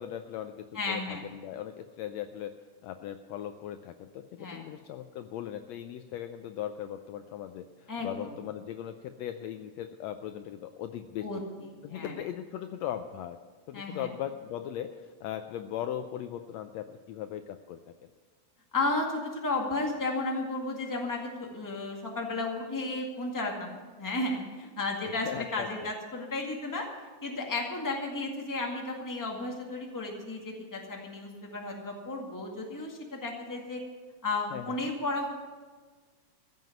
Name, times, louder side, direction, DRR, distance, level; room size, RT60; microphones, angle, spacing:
voice 1, 0.0-2.5 2.8-11.3 11.8-13.4 13.7-17.8 25.2-25.7 34.5-34.7, left 10 dB, 80° left, 8 dB, 1.6 m, -38 dB
voice 2, 0.7-1.2 4.4-4.6 7.9-8.3 11.2-11.4 11.9-12.2 13.7-14.1 18.7-26.9 27.2-33.8 34.2-35.3, left 2 dB, 10° left, 0 dB, 1.4 m, -33 dB
14.5 x 7.7 x 9.2 m, 1.4 s
omnidirectional pair, 3.4 m